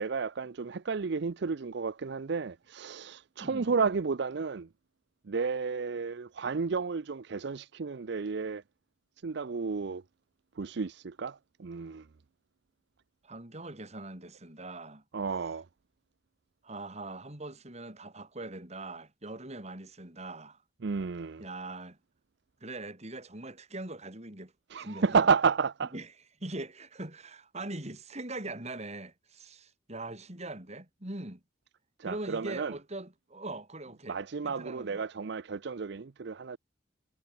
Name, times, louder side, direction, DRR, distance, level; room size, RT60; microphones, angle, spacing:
voice 1, 0.0-4.7 5.3-8.6 9.2-10.0 10.6-12.1 15.1-15.7 20.8-21.4 24.7-25.9 32.0-32.7 34.1-36.6, right 5 dB, 65° right, 0.5 m, -31 dB
voice 2, 13.2-15.0 16.6-20.6 21.4-22.0 22.6-24.5 24.8-25.3 25.9-26.1 26.4-31.4 32.0-34.2 34.4-35.0, right 2 dB, 35° right, 3.8 m, -41 dB
head